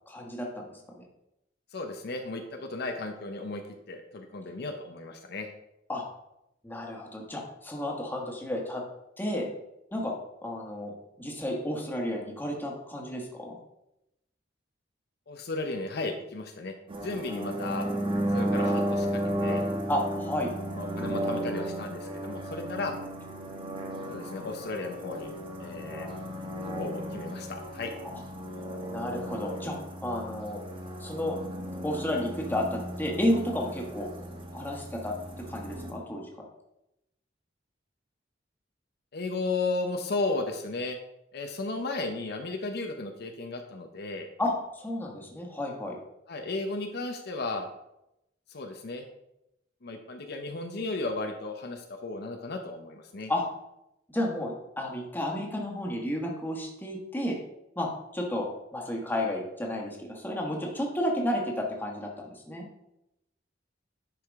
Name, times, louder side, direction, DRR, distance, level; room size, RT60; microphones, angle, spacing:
voice 1, 0.1-1.0 5.9-6.0 6.6-8.8 9.2-9.5 9.9-10.1 10.4-10.9 11.2-13.6 19.9-20.5 28.0-28.2 28.9-29.8 30.0-30.6 31.0-31.4 31.8-34.1 34.5-36.3 44.4-46.0 53.3-53.4 54.1-57.4 57.7-62.6, left 1 dB, 10° left, -1 dB, 1.4 m, -32 dB
voice 2, 1.7-3.6 3.9-5.5 15.3-16.7 17.0-17.9 18.3-19.6 20.8-22.9 24.1-26.1 26.8-27.9 39.1-41.0 41.3-44.3 46.3-47.7 48.5-49.1 49.8-53.3, left 3 dB, 60° left, 5 dB, 0.7 m, -34 dB
sound 1, 16.9-35.9, right 1 dB, 30° right, 1.0 m, -34 dB
10.0 x 4.9 x 3.5 m, 0.87 s
head